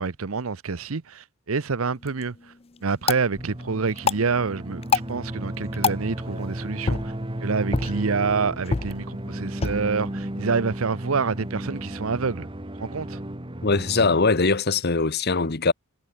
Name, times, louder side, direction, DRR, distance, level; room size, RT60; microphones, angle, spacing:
voice 1, 0.0-2.3 2.8-4.8 5.1-7.0 7.4-12.5 12.8-13.2, right 4 dB, 80° right, 0.8 m, -27 dB
sound 1, 1.9-12.0, left 4 dB, 30° left, 0.6 m, -31 dB
sound 2, 3.4-14.2, right 1 dB, 25° right, 1.9 m, -34 dB
voice 2, 13.6-15.7, left 3 dB, 50° left, 1.3 m, -21 dB
head